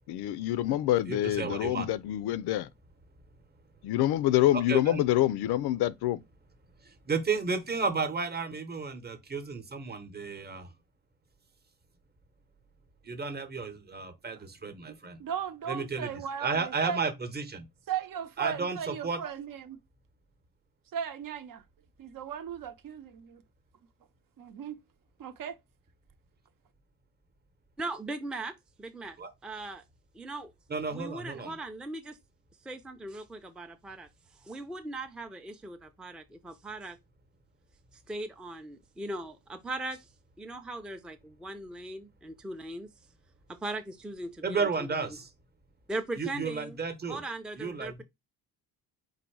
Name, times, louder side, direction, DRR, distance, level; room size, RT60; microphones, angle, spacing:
voice 1, 0.1-2.7 3.8-6.2, left 13 dB, 75° left, 0.5 m, -26 dB
voice 2, 1.1-1.9 4.7-5.0 6.8-10.7 13.0-15.2 15.7-16.1 16.4-17.6 18.4-19.2 29.2-29.3 30.7-31.5 44.4-45.3 46.2-47.2 47.6-48.0, right 4 dB, 25° right, 0.9 m, -33 dB
voice 3, 15.2-17.0 17.9-19.8 20.9-21.6 22.0-23.4 24.4-24.8 25.2-25.6, right 8 dB, 55° right, 0.8 m, -36 dB
voice 4, 27.8-28.5 28.8-29.2 29.4-29.8 30.1-30.5 30.9-32.2 32.6-34.1 34.4-37.0 38.1-40.1 40.4-42.9 43.5-44.9 45.9-46.8 47.1-48.0, right 2 dB, ahead, 0.4 m, -39 dB
4.0 x 2.7 x 4.6 m
cardioid pair, 100°, 39 cm